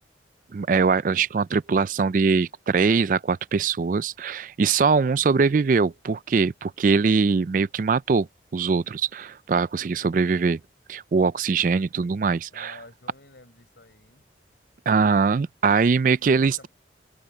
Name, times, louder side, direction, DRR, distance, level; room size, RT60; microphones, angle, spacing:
voice 1, 0.5-8.3 8.5-10.6 10.9-12.7 14.9-16.7, right 5 dB, 45° right, 0.4 m, -22 dB
voice 2, 12.5-14.2 16.2-16.7, left 2 dB, 70° left, 5.7 m, -50 dB
head